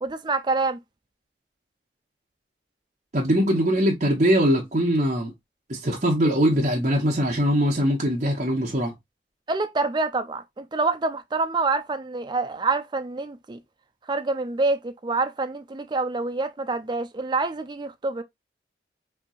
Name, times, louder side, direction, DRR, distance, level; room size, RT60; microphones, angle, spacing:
voice 1, 0.0-0.8 9.5-13.6 14.1-18.2, right 3 dB, 25° right, 0.4 m, -26 dB
voice 2, 3.1-5.3 5.7-8.9, equal, 40° right, 0.8 m, -22 dB
4.4 x 2.7 x 2.4 m
head